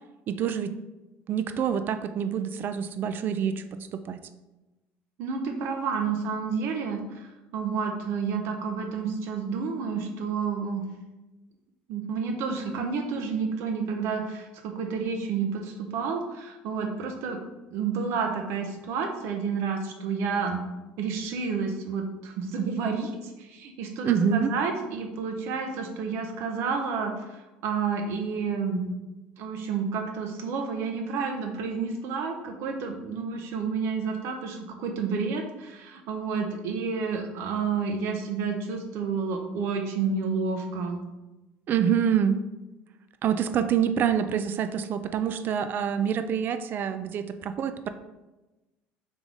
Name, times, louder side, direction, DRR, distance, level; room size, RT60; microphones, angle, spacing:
voice 1, 0.3-0.7 1.3-3.6 3.9-4.2 24.0-24.5 41.7-42.4 43.2-47.9, right 8 dB, 45° right, 10 dB, 0.4 m, -26 dB
voice 2, 5.2-10.8 11.9-17.4 17.7-20.6 21.0-27.1 27.6-28.9 29.4-41.0, right 5 dB, 70° right, 3 dB, 0.8 m, -30 dB
3.9 x 3.3 x 3.8 m, 1.1 s
supercardioid pair, 100°, 5 cm